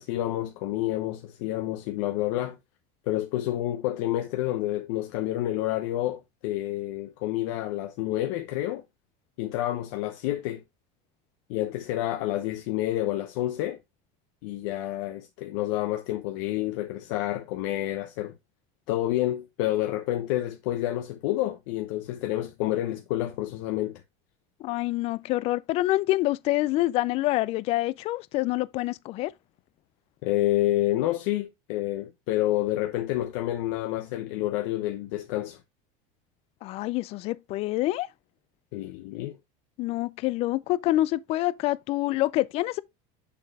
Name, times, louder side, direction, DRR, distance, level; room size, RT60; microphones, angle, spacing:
voice 1, 0.0-2.6 3.1-8.8 9.4-10.6 11.5-13.8 14.4-18.4 18.9-24.0 30.2-35.6 38.7-39.4, left 14 dB, 70° left, 0.8 m, -29 dB
voice 2, 24.6-29.3 36.6-38.1 39.8-42.8, left 17 dB, 40° left, 0.3 m, -26 dB
7.0 x 6.8 x 2.3 m
cardioid pair, 165°, 17 cm